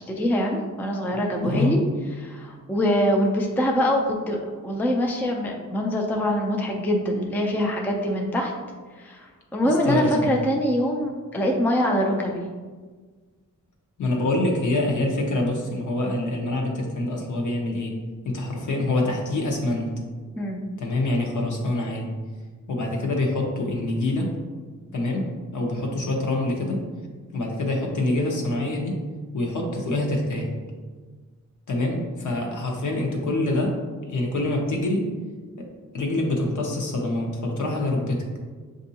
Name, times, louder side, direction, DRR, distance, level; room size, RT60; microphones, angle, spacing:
voice 1, 0.0-1.8 2.2-8.5 9.0-12.5 20.4-20.7, equal, 5° left, 1 dB, 0.3 m, -24 dB
voice 2, 1.4-1.7 9.6-10.4 14.0-17.9 18.2-19.9 20.8-22.1 22.7-24.3 24.9-25.3 25.5-26.8 27.3-29.0 29.3-30.5 31.7-33.8 34.1-35.1 35.9-38.2, left 2 dB, 70° left, 0 dB, 0.9 m, -25 dB
7.1 x 2.6 x 2.7 m, 1.4 s
wide cardioid pair, 160°, 31 cm